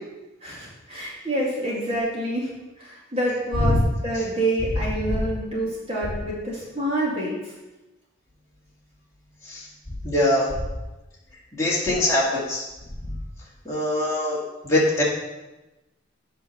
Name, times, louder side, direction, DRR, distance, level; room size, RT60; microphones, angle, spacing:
voice 1, 0.4-2.5 2.8-3.8 4.0-7.5, right 1 dB, 30° right, -5 dB, 2.1 m, -27 dB
voice 2, 10.0-10.5 11.6-12.6 13.7-14.4 14.6-15.0, left 1 dB, 15° left, -7 dB, 2.3 m, -22 dB
8.0 x 5.8 x 5.8 m, 1.1 s
head